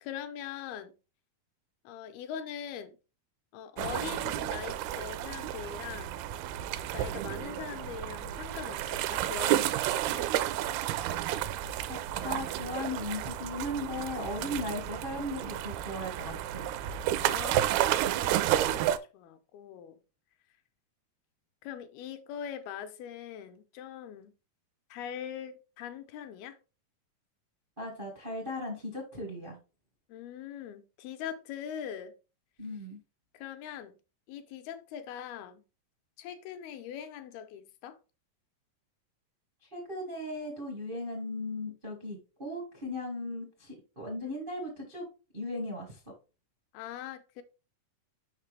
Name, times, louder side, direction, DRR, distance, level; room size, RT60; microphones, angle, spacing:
voice 1, 0.0-0.9 1.8-3.0 3.5-6.2 6.9-10.3 14.7-14.9 17.2-20.0 21.6-24.3 24.9-26.6 30.1-32.1 33.3-33.9 34.3-35.6 36.2-38.0 44.2-44.3 46.7-47.4, left 9 dB, 80° left, 2.6 m, -42 dB
sound 1, 3.8-19.0, right 12 dB, 85° right, 2.4 m, -31 dB
voice 2, 11.9-16.7 27.8-29.6 32.6-33.0 39.6-45.1 45.3-46.0, left 1 dB, 65° right, 0.5 m, -37 dB
6.5 x 5.9 x 3.3 m
omnidirectional pair, 4.5 m